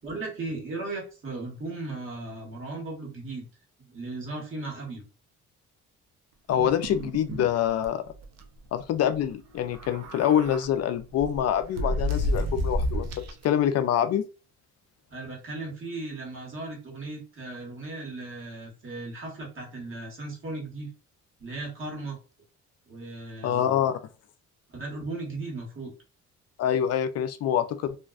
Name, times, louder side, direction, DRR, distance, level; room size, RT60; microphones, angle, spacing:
voice 1, 0.0-3.4 3.9-5.0 15.1-20.9 21.4-22.2 22.9-23.9 24.7-25.9, right 2 dB, 45° right, 1.3 m, -36 dB
voice 2, 6.5-8.0 8.7-13.1 13.4-14.3 23.4-24.0 26.6-28.0, left 10 dB, 55° left, 0.4 m, -25 dB
sound 1, 6.5-7.5 7.8-7.9 8.2-8.4 9.6-10.7 11.2-13.4, equal, 60° right, 0.5 m, -30 dB
2.5 x 2.2 x 2.3 m
cardioid pair, 90°, 30 cm